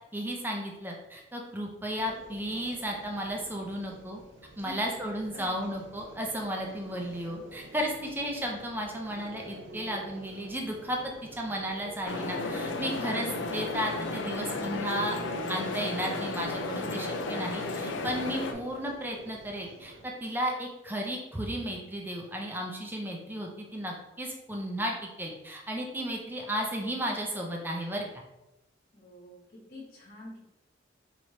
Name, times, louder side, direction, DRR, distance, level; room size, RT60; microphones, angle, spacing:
voice 1, 0.1-4.2 4.6-11.0 11.4-15.2 15.5-28.0, equal, 10° right, 0 dB, 0.5 m, -34 dB
sound 1, 2.0-20.1, equal, 90° right, 0.8 m, -49 dB
voice 2, 4.6-5.5 28.9-30.4, left 2 dB, 50° left, -5 dB, 1.2 m, -48 dB
sound 2, 12.0-18.5, left 3 dB, 70° left, 0.5 m, -33 dB
4.5 x 3.0 x 2.8 m, 0.95 s
head